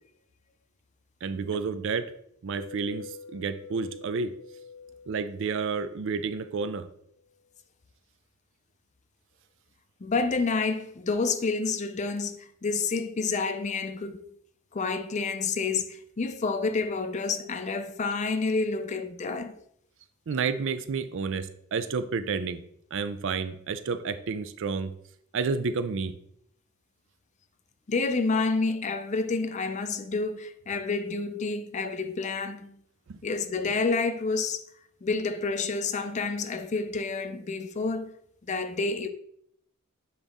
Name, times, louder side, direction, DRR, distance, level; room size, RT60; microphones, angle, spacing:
voice 1, 1.2-2.1 2.4-4.3 5.1-6.9 20.3-22.6 22.9-24.9 25.3-26.1 33.1-33.2, right 5 dB, 60° right, 0.4 m, -30 dB
sound 1, 2.5-6.9, left 6 dB, 85° left, 0.7 m, -47 dB
voice 2, 10.0-14.2 14.7-19.6 27.9-32.8 33.2-34.6 35.0-38.1 38.4-39.1, left 4 dB, 35° left, 0.4 m, -29 dB
7.1 x 3.9 x 3.6 m
head